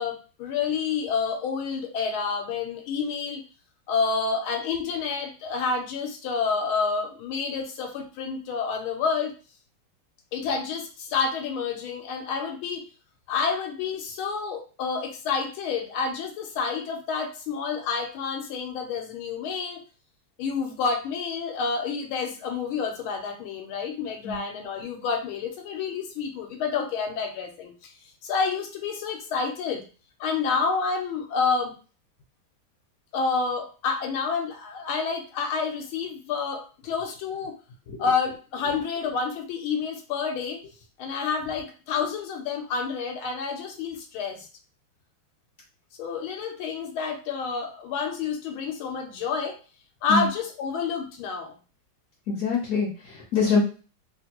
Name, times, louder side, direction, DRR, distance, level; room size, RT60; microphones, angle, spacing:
voice 1, 0.0-3.4 3.9-9.3 10.3-12.8 13.3-19.8 20.4-27.9 28.2-29.8 30.2-31.7 33.1-37.5 38.0-40.6 41.0-44.5 46.0-49.6 50.0-51.5, left 5 dB, 85° left, 2 dB, 1.5 m, -29 dB
voice 2, 52.3-53.6, left 5 dB, 60° left, -2 dB, 0.9 m, -24 dB
3.3 x 2.6 x 2.8 m, 0.36 s
omnidirectional pair, 2.2 m